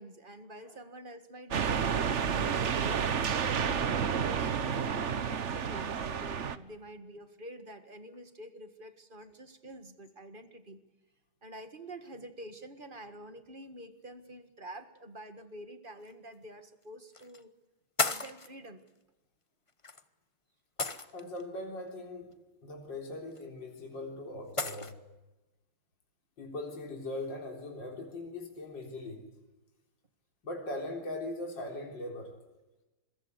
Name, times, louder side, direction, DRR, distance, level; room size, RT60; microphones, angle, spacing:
voice 1, 0.0-3.1 3.7-10.8 11.4-17.5 18.0-18.8, right 1 dB, 25° right, 9 dB, 1.7 m, -47 dB
sound 1, 1.5-6.6, right 7 dB, 45° right, 1.0 m, -30 dB
sound 2, 16.0-16.1 17.1-17.4 18.0-18.5 19.8-20.0 20.8-21.4 23.4-23.5 24.6-24.9, left 3 dB, 35° left, 0.5 m, -33 dB
voice 2, 21.1-22.3 22.6-24.9 26.4-29.3 30.4-32.3, left 2 dB, 55° left, 1 dB, 4.4 m, -40 dB
26.5 x 22.5 x 8.1 m, 1.1 s
omnidirectional pair, 2.4 m